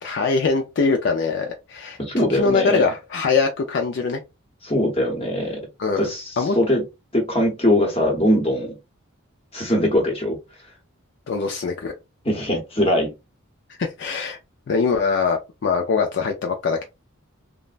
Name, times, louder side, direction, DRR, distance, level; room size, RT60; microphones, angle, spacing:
voice 1, 0.0-4.2 5.8-6.1 6.4-6.6 11.3-11.9 13.8-14.4 14.7-16.8, left 4 dB, 55° left, 0.4 m, -22 dB
voice 2, 2.0-2.9 4.6-5.6 6.0-6.8 7.1-8.8 9.5-10.4 12.2-13.1, left 1 dB, 30° left, 0.9 m, -21 dB
3.2 x 2.0 x 2.4 m
head